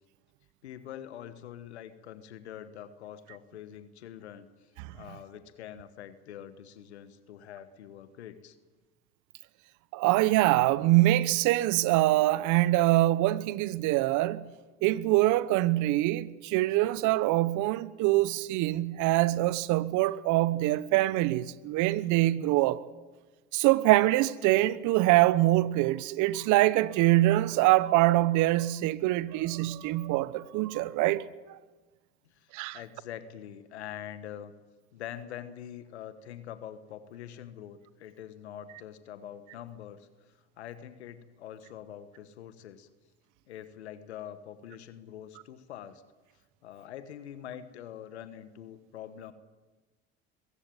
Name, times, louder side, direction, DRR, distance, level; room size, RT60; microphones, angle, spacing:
voice 1, 0.6-4.5 4.9-8.6 32.3-34.5 34.9-40.1 40.6-42.9 43.5-46.0 46.6-49.3, left 10 dB, 90° left, 1.4 m, -44 dB
voice 2, 9.9-14.5 14.8-22.8 23.5-31.2 31.5-31.6 32.5-32.8, right 17 dB, 65° right, 1.1 m, -24 dB
22.5 x 15.0 x 9.1 m
hypercardioid pair, 70°, 32 cm